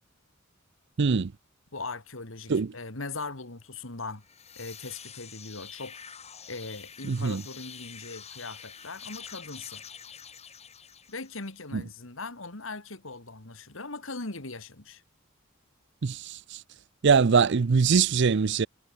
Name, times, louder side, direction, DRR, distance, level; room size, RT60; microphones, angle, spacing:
voice 1, 1.0-1.3 2.5-2.7 7.1-7.4 11.7-11.8 16.0-16.6 17.0-18.7, right 5 dB, 55° right, 0.5 m, -23 dB
voice 2, 1.7-4.2 4.6-6.0 6.5-9.8 11.1-15.0, left 3 dB, 70° left, 2.6 m, -40 dB
sound 1, 4.1-11.6, left 7 dB, 30° left, 3.3 m, -46 dB
head